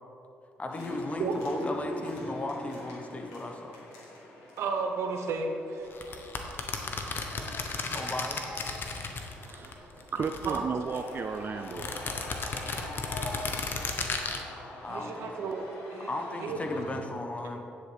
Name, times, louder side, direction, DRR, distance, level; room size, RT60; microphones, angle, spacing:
voice 1, 0.6-3.8 7.9-8.6 14.8-15.3 16.1-17.6, left 2 dB, 30° left, 3 dB, 1.1 m, -36 dB
sound 1, 0.7-17.0, left 1 dB, 90° left, 1.5 m, -43 dB
voice 2, 4.6-5.9 10.4-10.6 12.7-12.9 14.9-16.1 16.4-16.6, right 4 dB, 70° right, 4 dB, 1.0 m, -33 dB
sound 2, 5.9-9.7 10.0-11.1 11.6-14.4, left 4 dB, 50° left, 1.0 m, -34 dB
voice 3, 9.4-11.9, right 5 dB, 45° right, 7 dB, 0.4 m, -34 dB
9.4 x 8.4 x 3.4 m, 2.8 s
supercardioid pair, 55°, 5 cm